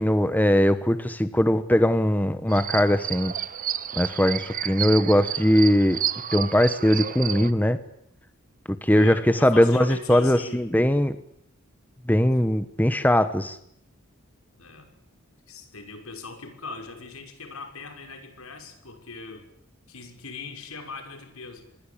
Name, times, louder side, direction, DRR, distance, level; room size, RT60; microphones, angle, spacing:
voice 1, 0.0-3.3 4.0-6.0 6.3-7.8 8.8-11.1 12.1-13.6, left 1 dB, 10° left, 11 dB, 1.2 m, -20 dB
sound 1, 2.5-7.5, right 10 dB, 40° right, 0.9 m, -31 dB
voice 2, 8.9-10.7 14.6-14.9 15.5-19.5 19.9-21.6, left 4 dB, 90° left, 5 dB, 6.2 m, -40 dB
26.5 x 21.0 x 8.8 m, 0.73 s
head